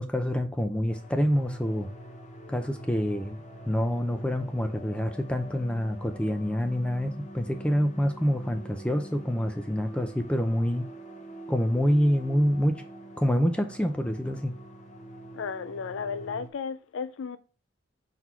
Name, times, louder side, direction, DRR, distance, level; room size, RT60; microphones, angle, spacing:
voice 1, 0.0-1.9 2.5-3.4 3.7-10.9 11.5-12.8 13.2-14.5, equal, 5° left, 0.5 m, -26 dB
sound 1, 0.9-16.5, equal, 35° left, 0.9 m, -45 dB
voice 2, 15.3-17.4, left 5 dB, 80° left, 0.4 m, -34 dB
4.5 x 4.1 x 5.5 m
head